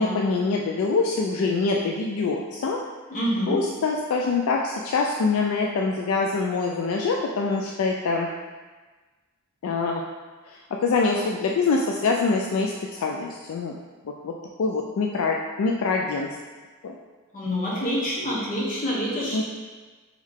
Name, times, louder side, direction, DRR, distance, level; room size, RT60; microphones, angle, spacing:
voice 1, 0.0-2.8 3.5-8.3 9.6-10.0 10.5-13.8 14.0-14.3 14.6-16.3 16.8-16.9 19.3-19.4, left 4 dB, 65° left, 0 dB, 0.3 m, -24 dB
voice 2, 3.1-3.6 17.3-19.4, equal, 40° left, -7 dB, 1.1 m, -27 dB
3.6 x 3.1 x 3.5 m, 1.3 s
head